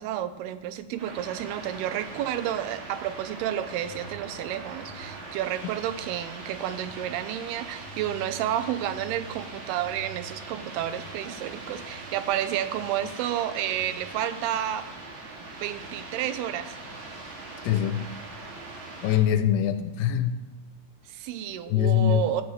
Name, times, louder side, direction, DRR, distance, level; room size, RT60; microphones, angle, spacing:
voice 1, 0.0-14.9 15.5-16.8 21.1-22.4, right 11 dB, 80° right, 11 dB, 2.5 m, -31 dB
sound 1, 1.0-19.2, right 2 dB, 50° right, 3.3 m, -41 dB
voice 2, 17.6-18.1 19.0-20.4 21.7-22.3, left 10 dB, 85° left, 9 dB, 2.6 m, -23 dB
16.5 x 9.9 x 3.2 m, 1.2 s
omnidirectional pair, 4.7 m